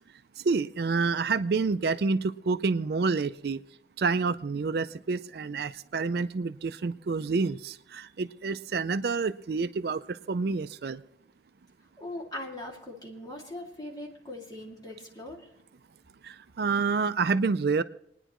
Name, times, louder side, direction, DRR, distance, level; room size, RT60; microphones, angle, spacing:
voice 1, 0.4-3.6 4.0-11.0 16.2-17.8, right 4 dB, 55° right, 12 dB, 0.4 m, -28 dB
voice 2, 12.0-15.5, left 1 dB, 20° left, -3 dB, 2.4 m, -40 dB
28.5 x 10.0 x 3.0 m, 0.77 s
head